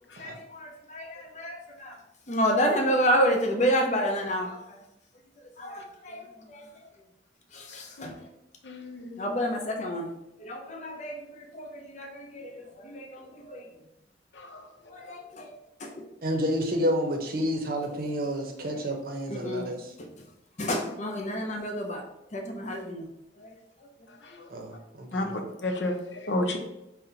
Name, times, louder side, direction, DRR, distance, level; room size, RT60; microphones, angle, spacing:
voice 1, 0.2-2.0 2.3-4.6 5.6-6.7 7.5-8.1 9.2-10.1 10.4-13.7 14.9-15.5 15.8-16.0 19.3-19.7 20.0-20.1 20.6-22.0 22.3-23.1 23.4-23.5, equal, 40° left, 3 dB, 0.6 m, -29 dB
voice 2, 8.7-9.3 25.1-25.9 26.2-26.6, left 1 dB, 80° left, 4 dB, 0.6 m, -30 dB
voice 3, 16.2-19.9 24.5-25.3, equal, 55° right, 3 dB, 0.6 m, -30 dB
4.1 x 2.1 x 3.8 m, 0.88 s
head